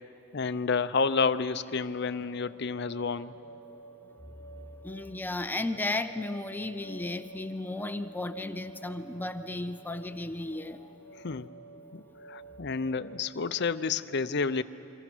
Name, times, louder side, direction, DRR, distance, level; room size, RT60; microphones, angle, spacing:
voice 1, 0.3-3.3 11.2-11.5 11.9-12.0 12.3-14.6, left 4 dB, 55° left, 13 dB, 0.6 m, -29 dB
sound 1, 1.7-13.3, right 2 dB, 75° right, 1.5 m, -51 dB
voice 2, 4.8-11.0, left 2 dB, 10° left, 9 dB, 0.6 m, -34 dB
30.0 x 24.0 x 6.2 m, 2.9 s
head